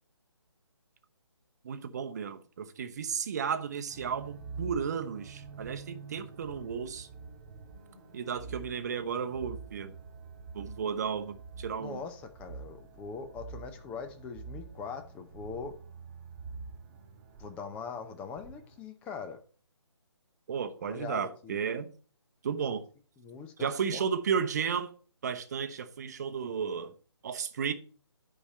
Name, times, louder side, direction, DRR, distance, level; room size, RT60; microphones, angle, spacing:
voice 1, 1.6-7.1 8.1-9.9 10.5-12.0 20.5-21.9 22.4-22.8 23.6-24.9 25.2-26.9 27.2-27.7, right 7 dB, 35° right, 0.8 m, -33 dB
sound 1, 3.9-18.8, right 4 dB, 20° right, 1.9 m, -47 dB
voice 2, 11.8-15.8 17.4-19.4 20.8-21.6 23.2-24.1, left 5 dB, 10° left, 0.5 m, -42 dB
9.9 x 5.1 x 4.3 m
figure-of-eight pair, 155°, 15 cm